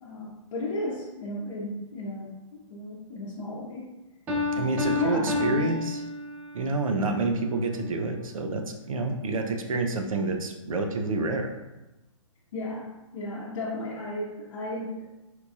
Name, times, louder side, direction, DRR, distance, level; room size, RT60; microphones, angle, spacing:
voice 1, 0.0-3.9 4.5-5.7 12.5-15.1, left 1 dB, 55° left, -7 dB, 0.8 m, -34 dB
Piano, 4.3-6.7, left 2 dB, 10° right, 0.3 m, -29 dB
voice 2, 4.5-6.0 6.5-11.5, right 3 dB, 80° right, 4 dB, 0.6 m, -28 dB
4.6 x 2.3 x 2.6 m, 1.0 s
hypercardioid pair, 145°, 17 cm